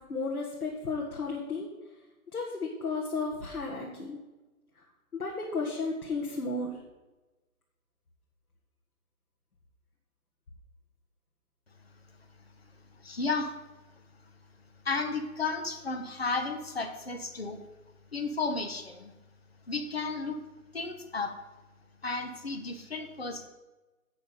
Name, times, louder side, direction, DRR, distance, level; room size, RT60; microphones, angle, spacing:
voice 1, 0.0-1.7 2.3-4.2 5.1-6.8, left 3 dB, 80° left, -1 dB, 1.8 m, -33 dB
voice 2, 13.0-13.5 14.8-17.6 18.1-19.1 19.7-20.4 20.7-21.3 22.0-23.5, left 3 dB, 45° left, 6 dB, 1.0 m, -33 dB
8.1 x 6.8 x 5.3 m, 1.1 s
hypercardioid pair, 180°, 44 cm